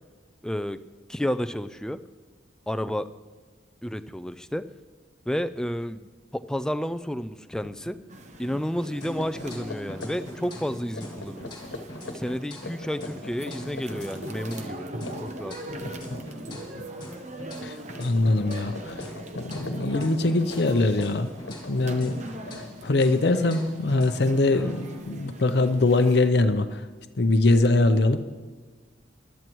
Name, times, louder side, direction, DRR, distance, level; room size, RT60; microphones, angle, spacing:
voice 1, 0.4-0.8 1.1-2.0 2.7-3.1 3.8-4.7 5.3-8.0 8.4-11.5 12.1-14.9 15.2-15.5, equal, 5° left, 10 dB, 0.3 m, -31 dB
sound 1, 7.6-7.9 8.3-8.5 9.0-17.0 17.3-17.7 17.9-23.0, left 2 dB, 85° left, 1.2 m, -41 dB
sound 2, 8.1-26.3, right 1 dB, 40° right, 0.9 m, -41 dB
sound 3, 9.0-10.7 11.0-14.7 15.0-18.8 19.0-22.7 23.0-25.0, left 1 dB, 25° left, 2.6 m, -44 dB
voice 2, 17.6-18.9 19.4-21.3 21.7-22.2 22.8-26.8 27.2-28.4, left 2 dB, 60° left, 8 dB, 0.6 m, -22 dB
20.0 x 12.5 x 3.1 m, 1.4 s
head